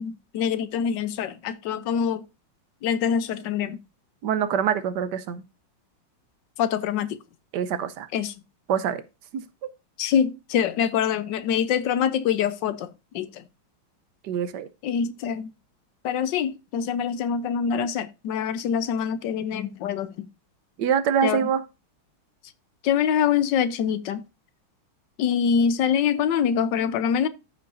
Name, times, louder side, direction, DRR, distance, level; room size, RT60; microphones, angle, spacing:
voice 1, 0.0-2.2 2.8-3.8 6.6-7.2 8.1-8.3 10.0-13.4 14.8-15.5 16.0-20.3 21.2-21.5 22.8-24.2 25.2-27.3, left 8 dB, 70° left, 1.3 m, -25 dB
voice 2, 4.2-5.4 7.5-8.1 8.7-9.0 9.3-9.4 14.2-14.7 20.8-21.6, right 8 dB, 65° right, 1.2 m, -24 dB
14.0 x 5.6 x 2.6 m
omnidirectional pair, 2.2 m